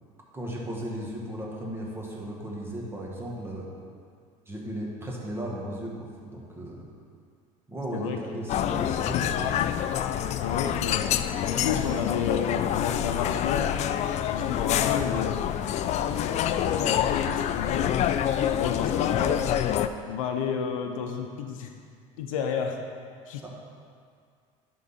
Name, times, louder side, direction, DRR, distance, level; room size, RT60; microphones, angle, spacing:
voice 1, 0.3-3.7 4.5-6.9 7.7-9.5 23.4-23.5, right 1 dB, 15° right, -3 dB, 1.7 m, -36 dB
sound 1, 8.5-19.9, left 10 dB, 45° left, 0.4 m, -26 dB
voice 2, 10.4-11.1 11.4-13.7 14.3-15.4 16.1-16.3 16.6-18.0 18.6-19.5 20.1-21.7 22.2-22.8 23.3-23.5, left 7 dB, 85° left, 4 dB, 0.6 m, -31 dB
11.0 x 3.9 x 4.2 m, 2.2 s
hypercardioid pair, 85°, 17 cm